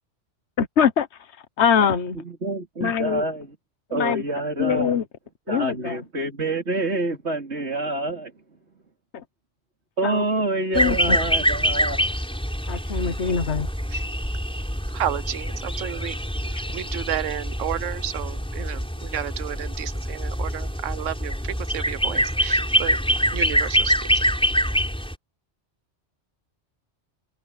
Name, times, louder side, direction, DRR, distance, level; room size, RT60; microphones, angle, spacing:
voice 1, 0.6-1.1 1.6-2.2 2.8-3.2 3.9-4.2 4.6-5.0 5.5-6.0 9.1-9.2 10.0-10.3 10.7-11.2 12.7-13.7, left 7 dB, 65° left, 1.4 m, -23 dB
voice 2, 2.2-3.5 3.9-5.0 5.5-8.3 10.0-12.1, right 2 dB, 60° right, 3.8 m, -27 dB
sound 1, 10.7-25.1, equal, 5° left, 5.0 m, -25 dB
voice 3, 15.0-15.5 15.8-16.1 16.7-18.8 19.1-21.3 21.7-23.0 23.3-23.9, right 11 dB, 90° right, 1.1 m, -31 dB
omnidirectional pair, 1.2 m